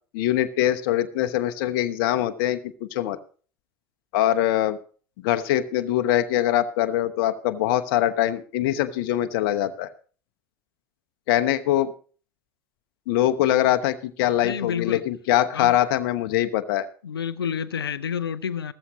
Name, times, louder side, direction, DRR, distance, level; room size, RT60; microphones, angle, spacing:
voice 1, 0.1-3.2 4.1-4.8 5.2-9.9 11.3-11.9 13.1-16.9, left 12 dB, 60° left, 0.9 m, -23 dB
voice 2, 14.3-15.0 15.5-15.8 17.0-18.7, left 7 dB, 85° left, 0.6 m, -29 dB
14.5 x 14.0 x 3.0 m
figure-of-eight pair, 70°, 12 cm